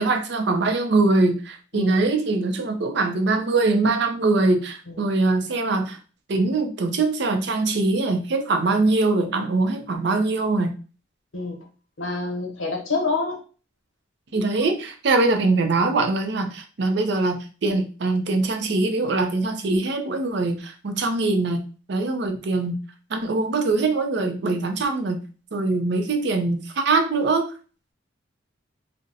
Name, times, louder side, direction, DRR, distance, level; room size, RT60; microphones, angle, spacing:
voice 1, 0.0-6.0 6.3-10.8 14.3-21.6 21.9-22.8 23.1-25.2 25.5-27.5, right 3 dB, 60° right, 6 dB, 0.5 m, -22 dB
voice 2, 11.3-11.6 12.0-13.4, left 3 dB, 80° left, 1 dB, 0.9 m, -27 dB
2.5 x 2.1 x 3.9 m, 0.36 s
head